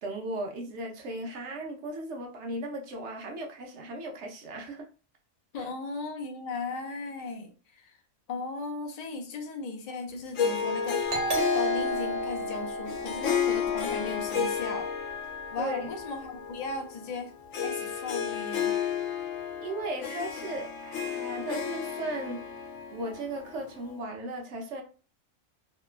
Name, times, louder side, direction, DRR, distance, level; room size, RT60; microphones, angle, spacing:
voice 1, 0.0-4.9 5.6-5.7 15.6-15.8 19.2-19.3 19.6-22.6 22.9-24.8, right 1 dB, 70° right, 2 dB, 0.9 m, -36 dB
voice 2, 5.5-8.0 8.3-11.0 11.5-14.9 15.5-18.8, left 3 dB, 55° left, 4 dB, 0.4 m, -37 dB
Harp, 10.3-24.0, left 7 dB, 90° left, 1.0 m, -32 dB
Doorbell, 11.1-14.4, right 2 dB, 85° right, 1.2 m, -33 dB
2.8 x 2.2 x 2.3 m, 0.36 s
omnidirectional pair, 1.3 m